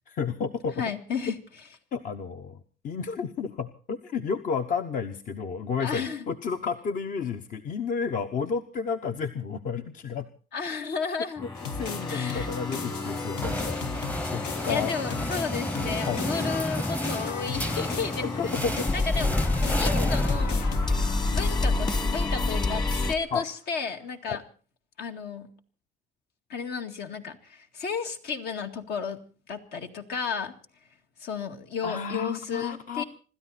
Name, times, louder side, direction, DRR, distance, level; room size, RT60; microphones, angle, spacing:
voice 1, 0.1-0.8 1.9-2.6 2.8-10.3 11.4-11.5 11.7-13.9 14.3-14.9 16.1-16.6 18.4-18.7 23.3-23.5 24.3-24.4 31.8-33.0, left 6 dB, 50° left, 8 dB, 1.0 m, -31 dB
voice 2, 0.8-1.4 5.8-6.2 10.5-11.4 12.1-12.5 14.7-18.5 18.9-24.4 25.0-25.5 26.5-30.5 31.2-33.0, left 5 dB, 70° left, 5 dB, 2.1 m, -33 dB
sound 1, 11.4-23.1, left 2 dB, 25° left, 1.4 m, -29 dB
sound 2, 11.6-22.7, left 5 dB, 90° left, 1.6 m, -38 dB
sound 3, 13.0-21.0, equal, 10° left, 0.8 m, -32 dB
26.5 x 13.0 x 4.2 m, 0.39 s
cardioid pair, 110°, 17 cm